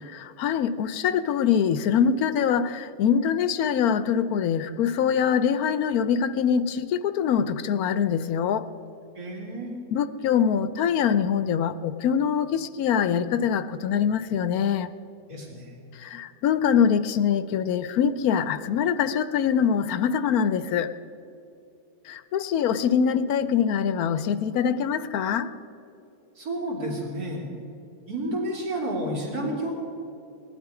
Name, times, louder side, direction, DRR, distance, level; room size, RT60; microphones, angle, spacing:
voice 1, 0.1-8.7 9.9-14.9 16.0-20.9 22.1-25.5, left 7 dB, 70° left, 13 dB, 1.1 m, -24 dB
voice 2, 9.1-9.7 15.3-15.7 26.4-27.5 28.1-29.7, right 1 dB, 65° right, -2 dB, 3.4 m, -30 dB
19.5 x 12.0 x 4.9 m, 2.8 s
omnidirectional pair, 1.7 m